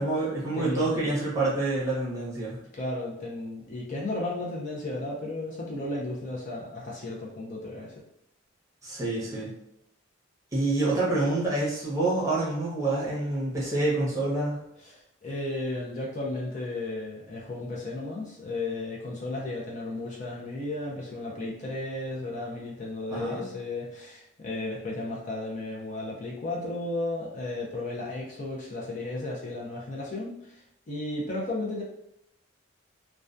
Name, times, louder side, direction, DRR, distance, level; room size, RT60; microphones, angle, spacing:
voice 1, 0.0-2.6 8.8-9.5 10.5-14.6 23.1-23.5, right 2 dB, 15° right, -7 dB, 0.8 m, -27 dB
voice 2, 0.5-1.0 2.7-7.9 14.8-31.8, left 2 dB, 40° left, -3 dB, 0.5 m, -34 dB
2.2 x 2.2 x 2.5 m, 0.79 s
head